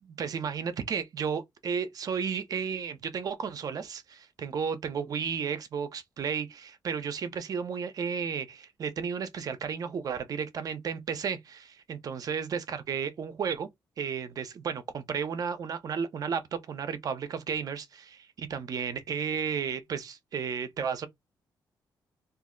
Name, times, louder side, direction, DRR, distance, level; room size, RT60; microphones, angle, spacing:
voice 1, 0.0-13.7 14.0-21.1, right 6 dB, 50° right, 0.6 m, -33 dB
2.5 x 2.0 x 3.7 m
cardioid pair, 120°, 8 cm